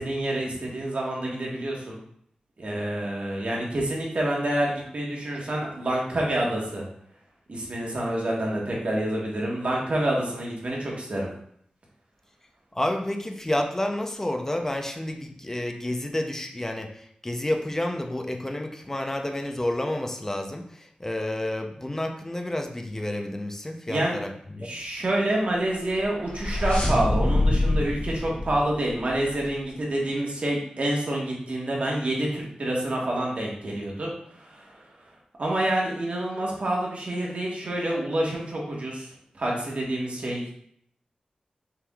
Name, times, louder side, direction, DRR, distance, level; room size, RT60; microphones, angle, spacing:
voice 1, 0.0-2.0 2.6-6.8 7.5-11.3 23.9-24.1 24.6-34.8 35.4-39.1 39.3-40.5, right 1 dB, 55° right, -2 dB, 1.3 m, -28 dB
voice 2, 12.7-24.7, left 1 dB, 15° left, 3 dB, 0.6 m, -30 dB
sound 1, 25.8-29.5, left 1 dB, 60° left, 1.2 m, -26 dB
5.8 x 3.4 x 2.3 m, 0.67 s
wide cardioid pair, 90°, 3 cm